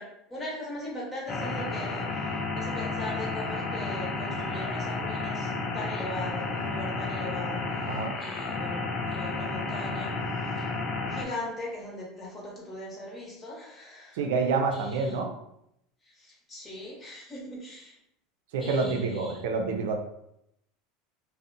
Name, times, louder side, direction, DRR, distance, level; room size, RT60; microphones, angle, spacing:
voice 1, 0.0-10.1 10.4-10.7 11.1-14.2 14.7-15.3 16.0-18.0 18.6-19.4, left 1 dB, 20° left, -3 dB, 0.9 m, -40 dB
sound 1, 1.3-11.2, left 3 dB, 35° left, 0.4 m, -32 dB
voice 2, 14.1-15.3 18.5-20.0, right 4 dB, 85° right, 4 dB, 0.4 m, -28 dB
2.5 x 2.0 x 2.6 m, 0.78 s
supercardioid pair, 120°, 0 cm